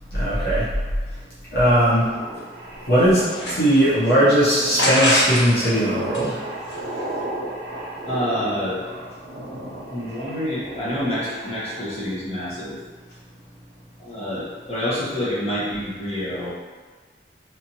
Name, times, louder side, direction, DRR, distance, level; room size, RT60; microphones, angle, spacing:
voice 1, 0.1-0.7 1.5-2.1 2.9-3.2 3.5-6.4, equal, 60° left, -10 dB, 0.8 m, -18 dB
sound 1, 2.1-12.0, right 1 dB, 70° right, 0.6 m, -35 dB
sound 2, 2.7-4.1 4.8-5.7 6.0-7.2, left 1 dB, 90° left, 1.2 m, -25 dB
voice 2, 8.0-8.8 9.9-12.7 14.0-16.5, equal, 35° left, -9 dB, 1.1 m, -27 dB
3.3 x 2.7 x 2.8 m, 1.5 s
head